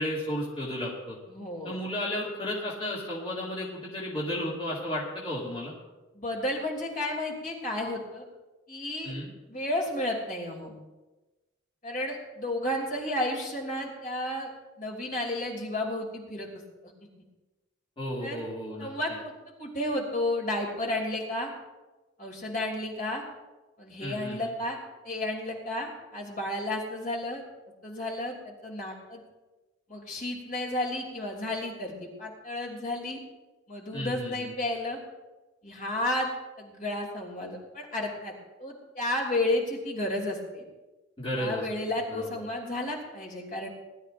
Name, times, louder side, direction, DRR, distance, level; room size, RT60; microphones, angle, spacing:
voice 1, 0.0-1.2 1.6-5.7 9.0-9.3 18.0-18.9 24.0-24.5 33.9-34.5 41.2-41.6 42.1-42.3, left 1 dB, 25° left, -7 dB, 2.6 m, -33 dB
voice 2, 1.3-1.8 6.1-8.2 8.7-9.1 9.5-10.7 11.8-14.5 14.8-16.5 16.8-16.9 18.2-18.4 18.8-19.3 19.6-21.5 22.2-23.2 23.8-24.8 25.0-27.4 27.8-29.2 29.9-33.2 33.7-35.0 35.6-36.3 36.6-38.3 38.6-40.6 41.3-43.7, left 1 dB, 45° left, -1 dB, 2.9 m, -32 dB
21.0 x 12.5 x 2.6 m, 1.1 s
head